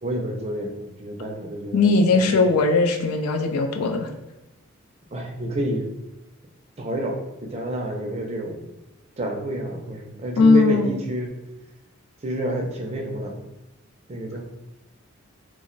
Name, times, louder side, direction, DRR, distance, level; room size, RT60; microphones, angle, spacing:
voice 1, 0.0-2.5 5.1-5.9 6.8-8.7 9.2-11.3 12.2-13.4 14.1-14.4, right 1 dB, 30° right, 1 dB, 0.4 m, -29 dB
voice 2, 1.7-4.1 10.4-10.9, left 3 dB, 90° left, 5 dB, 0.4 m, -19 dB
2.3 x 2.1 x 3.8 m, 0.97 s
head